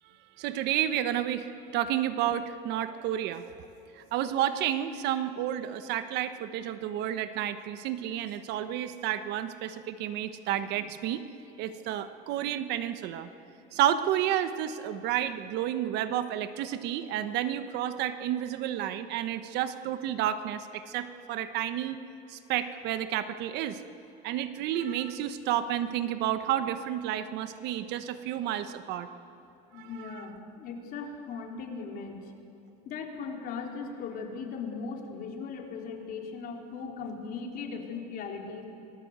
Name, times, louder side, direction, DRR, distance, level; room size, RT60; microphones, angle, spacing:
voice 1, 0.4-3.4 3.9-11.2 11.6-13.3 13.7-22.0 22.3-23.8 24.2-29.1 29.7-30.3, right 11 dB, 60° right, 11 dB, 1.2 m, -31 dB
voice 2, 29.7-32.2 32.9-38.6, left 5 dB, 50° left, 1 dB, 3.8 m, -38 dB
27.0 x 19.5 x 8.2 m, 2.8 s
cardioid pair, 145°, 20 cm